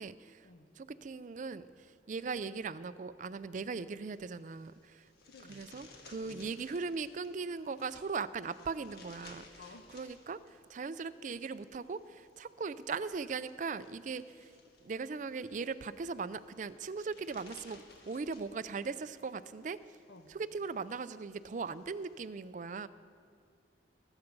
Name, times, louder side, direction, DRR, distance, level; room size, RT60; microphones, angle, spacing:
voice 1, 0.0-0.4 0.8-1.7 2.1-5.0 5.5-9.4 9.9-10.4 10.7-14.5 14.8-19.8 20.3-22.9, right 4 dB, 45° right, 15 dB, 0.4 m, -39 dB
sound 1, 4.1-22.3, left 3 dB, 60° left, 1.6 m, -60 dB
voice 2, 5.2-5.9 6.2-6.5 9.6-9.9 20.1-20.3, left 3 dB, 80° left, 7 dB, 1.0 m, -55 dB
19.5 x 8.1 x 5.3 m, 2.2 s
head